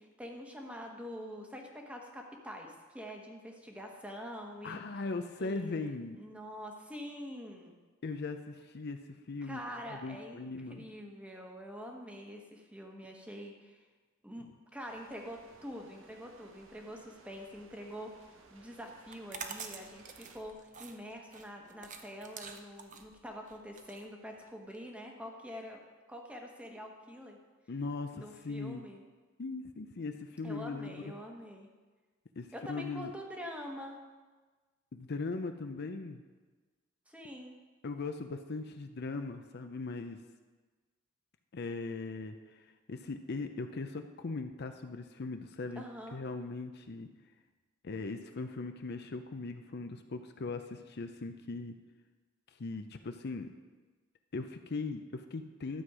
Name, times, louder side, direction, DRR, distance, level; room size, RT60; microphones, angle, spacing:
voice 1, 0.0-4.8 5.4-7.8 9.4-13.8 14.2-25.8 26.1-27.4 28.1-29.0 30.4-31.7 32.5-34.0 37.1-37.6 45.8-46.2, equal, 5° right, 1 dB, 1.2 m, -45 dB
voice 2, 4.6-6.2 8.0-9.0 9.3-9.6 9.8-10.9 27.7-28.8 29.4-31.0 32.4-33.1 34.9-36.2 37.8-40.2 41.5-45.8 46.1-47.1 47.8-51.8 52.6-53.5 54.3-55.8, left 3 dB, 55° left, 7 dB, 0.6 m, -39 dB
sound 1, 14.9-20.4, right 3 dB, 70° right, 1.1 m, -59 dB
sound 2, 19.0-24.8, right 6 dB, 40° right, 0.8 m, -47 dB
12.5 x 7.9 x 4.9 m, 1.3 s
head